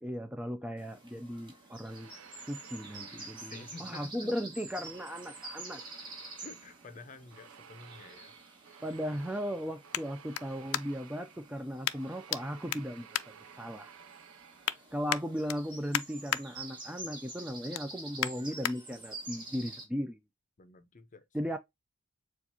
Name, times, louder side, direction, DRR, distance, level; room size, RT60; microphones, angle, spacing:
voice 1, 0.0-2.1 2.5-5.8 8.8-13.1 13.6-13.9 14.9-20.2 21.3-21.6, equal, 5° right, 0.3 m, -37 dB
sound 1, 0.8-19.8, right 2 dB, 25° right, 1.8 m, -48 dB
sound 2, 1.9-4.3 4.7-15.0, right 7 dB, 70° right, 0.5 m, -54 dB
voice 2, 3.2-4.3 6.4-8.3 20.6-21.3, left 3 dB, 35° left, 0.6 m, -50 dB
sound 3, 7.5-11.2 11.8-12.4 12.7-14.0 14.4-14.8 15.1-16.4 16.9-17.1 17.5-18.8 19.3-19.4, left 12 dB, 85° left, 0.4 m, -36 dB
7.0 x 2.4 x 2.7 m
head